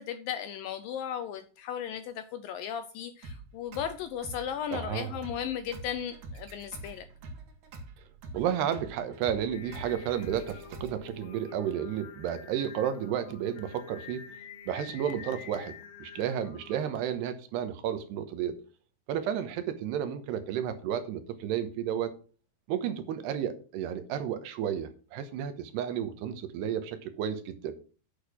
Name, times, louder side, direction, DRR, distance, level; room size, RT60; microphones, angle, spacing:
voice 1, 0.0-7.1, left 9 dB, 80° left, 2.1 m, -36 dB
sound 1, 3.2-11.2, right 2 dB, 60° right, 2.9 m, -46 dB
voice 2, 4.7-5.2 8.3-14.3 14.7-18.5 19.1-22.1 22.7-27.7, right 9 dB, 85° right, 3.2 m, -32 dB
Singing, 9.5-17.1, left 7 dB, 65° left, 2.4 m, -48 dB
8.8 x 6.7 x 6.0 m
omnidirectional pair, 4.7 m